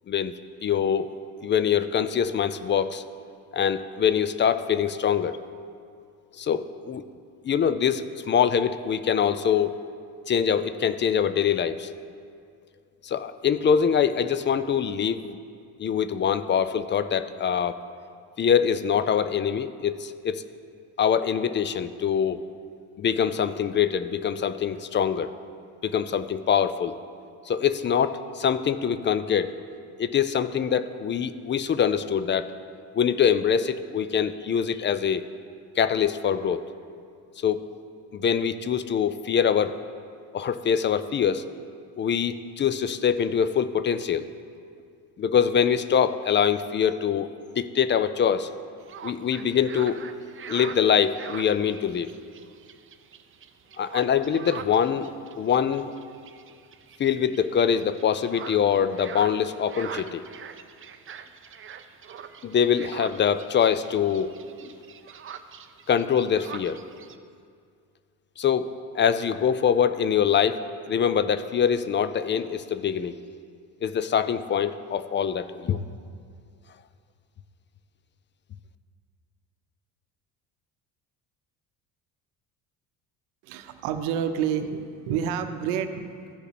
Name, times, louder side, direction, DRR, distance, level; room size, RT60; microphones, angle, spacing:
voice 1, 0.6-1.1 1.4-3.0 3.5-5.4 6.4-7.0 7.4-9.8 10.3-11.9 13.0-15.4 15.8-17.8 18.4-20.4 21.0-22.4 23.0-25.3 25.8-27.0 27.5-29.5 30.0-32.5 32.9-35.2 35.8-36.6 37.4-37.7 38.1-39.8 40.3-41.4 42.0-44.3 45.2-47.3 47.6-48.5 49.0-50.0 50.5-52.1 53.8-55.1 55.4-55.9 57.0-60.2 62.4-64.3 64.6-64.7 65.9-66.8 68.4-68.7 68.9-73.2 73.8-75.8, left 8 dB, 25° left, 13 dB, 0.4 m, -24 dB
sound 1, 48.8-67.2, right 7 dB, 30° right, 0.5 m, -43 dB
voice 2, 83.4-86.3, right 8 dB, 80° right, 8 dB, 0.8 m, -29 dB
14.5 x 5.3 x 4.2 m, 2.2 s
hypercardioid pair, 70°, 44 cm